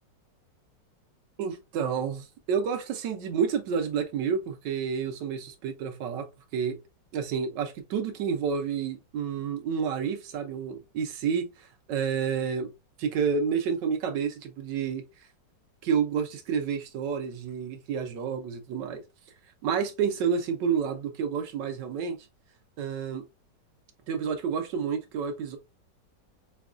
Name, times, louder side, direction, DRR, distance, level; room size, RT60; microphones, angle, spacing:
voice 1, 1.4-6.8 7.1-12.7 13.0-15.0 15.8-19.0 19.6-22.2 22.8-23.2 24.1-25.6, right 6 dB, 80° right, 1.4 m, -29 dB
5.0 x 2.3 x 2.4 m
omnidirectional pair, 1.9 m